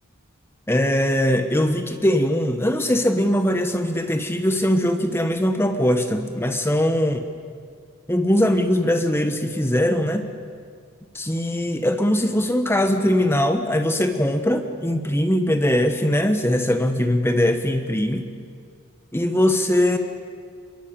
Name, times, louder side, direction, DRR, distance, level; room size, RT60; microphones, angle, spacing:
voice 1, 0.7-7.2 8.1-10.3 11.1-18.3 19.1-20.0, left 1 dB, 10° left, 7 dB, 1.2 m, -21 dB
28.5 x 22.5 x 8.8 m, 2.1 s
head